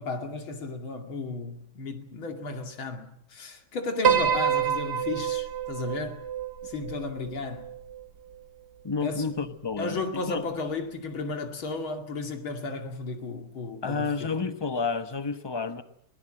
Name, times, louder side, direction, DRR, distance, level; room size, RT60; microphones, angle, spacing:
voice 1, 0.0-6.2 6.6-7.7 9.0-9.3 9.8-14.3, left 3 dB, 80° left, 3.2 m, -34 dB
Piano, 4.0-8.5, right 8 dB, 55° right, 1.9 m, -28 dB
voice 2, 8.8-10.4 13.8-15.8, left 4 dB, 20° left, 0.7 m, -30 dB
22.5 x 19.0 x 7.8 m
omnidirectional pair, 2.2 m